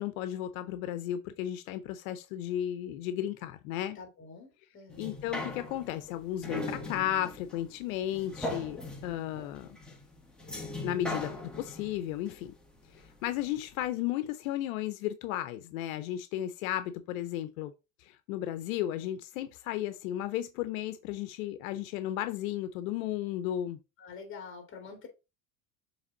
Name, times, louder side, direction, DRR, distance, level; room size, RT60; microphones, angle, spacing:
voice 1, 0.0-4.0 5.0-9.7 10.8-12.5 12.9-17.7 18.0-23.8, left 12 dB, 85° left, 0.7 m, -34 dB
voice 2, 3.9-5.1 24.0-25.1, left 5 dB, 30° left, 2.8 m, -46 dB
sound 1, 4.9-13.4 13.9-14.0, left 1 dB, ahead, 1.4 m, -40 dB
7.2 x 3.4 x 3.9 m
supercardioid pair, 120°, 40 cm